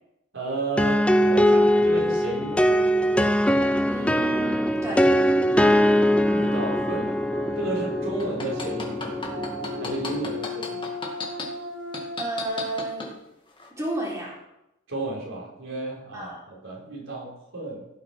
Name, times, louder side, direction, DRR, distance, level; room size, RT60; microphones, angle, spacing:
voice 1, 0.3-2.9 6.3-7.2 7.6-9.3 9.8-10.8 14.9-17.9, right 2 dB, 85° right, -2 dB, 4.2 m, -33 dB
sound 1, 0.8-10.4, equal, 5° left, 0.4 m, -22 dB
voice 2, 3.9-5.1 12.2-13.1 13.8-14.4 16.1-16.4, right 1 dB, 15° right, -4 dB, 3.6 m, -31 dB
sound 2, 5.8-12.4, left 3 dB, 65° right, 1.4 m, -37 dB
sound 3, 8.2-11.4 11.9-13.1 13.6-13.7, left 4 dB, 25° left, 2.0 m, -33 dB
16.0 x 6.4 x 6.0 m, 0.87 s
head